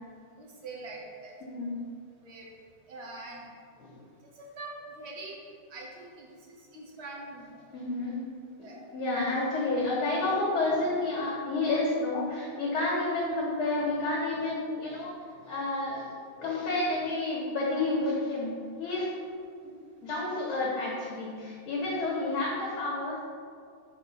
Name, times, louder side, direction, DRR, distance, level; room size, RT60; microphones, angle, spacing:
voice 1, 0.4-1.3 2.2-2.5 2.9-3.4 4.4-5.4 5.7-7.6 8.6-8.8, right 2 dB, 40° right, -2 dB, 1.0 m, -43 dB
voice 2, 1.4-1.7 3.8-4.0 7.7-8.2 8.9-19.1 19.6-19.7 20.0-23.2, left 2 dB, 75° left, -5 dB, 2.4 m, -30 dB
5.5 x 4.2 x 6.1 m, 2.2 s
omnidirectional pair, 2.4 m